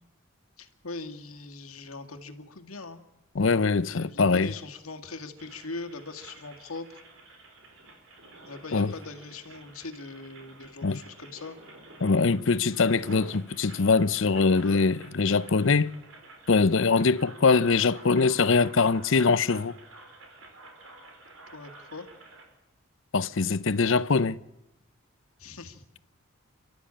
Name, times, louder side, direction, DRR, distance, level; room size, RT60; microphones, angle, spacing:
voice 1, 0.6-3.0 3.9-7.0 8.4-11.6 14.5-14.8 21.5-22.1 25.4-25.8, left 3 dB, 85° left, 2.0 m, -41 dB
voice 2, 3.4-4.5 8.7-8.9 10.8-11.0 12.0-16.0 16.5-19.7 23.1-24.4, left 4 dB, 65° left, 0.7 m, -23 dB
sound 1, 5.4-22.4, right 2 dB, 70° right, 5.3 m, -50 dB
29.5 x 12.5 x 8.7 m
head